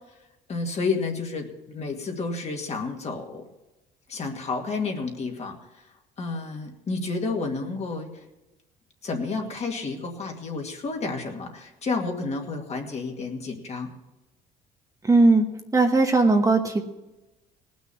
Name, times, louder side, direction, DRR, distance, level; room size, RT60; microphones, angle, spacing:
voice 1, 0.5-3.4 4.1-5.6 6.2-8.1 9.0-13.9, left 4 dB, 40° left, 2 dB, 2.2 m, -30 dB
voice 2, 15.0-15.5 15.7-16.8, right 3 dB, 20° right, 4 dB, 1.1 m, -18 dB
18.0 x 6.3 x 7.0 m, 1.0 s
cardioid pair, 110°, 17 cm